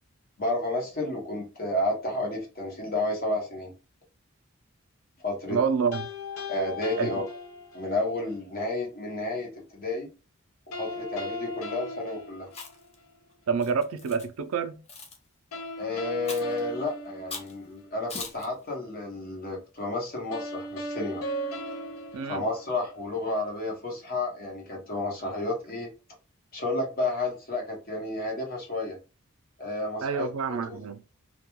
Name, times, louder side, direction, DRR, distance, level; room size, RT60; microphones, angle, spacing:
voice 1, 0.4-3.7 5.2-5.6 6.5-7.2 7.7-10.1 10.8-12.5 15.8-21.2 22.2-25.9 26.5-29.0 29.6-30.3 30.7-30.8, left 2 dB, 45° left, 0.9 m, -31 dB
voice 2, 5.5-6.1 7.0-7.1 13.5-14.8 22.1-22.5 30.0-31.0, right 6 dB, 80° right, 0.4 m, -28 dB
sound 1, 5.9-8.1 10.7-13.1 15.5-18.0 20.3-23.1, left 1 dB, 80° left, 0.5 m, -37 dB
Chewing mastication, 12.5-12.9 13.6-14.3 14.9-15.2 16.3-16.6 17.3-17.5 18.1-18.5, left 4 dB, 30° left, 0.5 m, -39 dB
2.2 x 2.2 x 2.9 m
head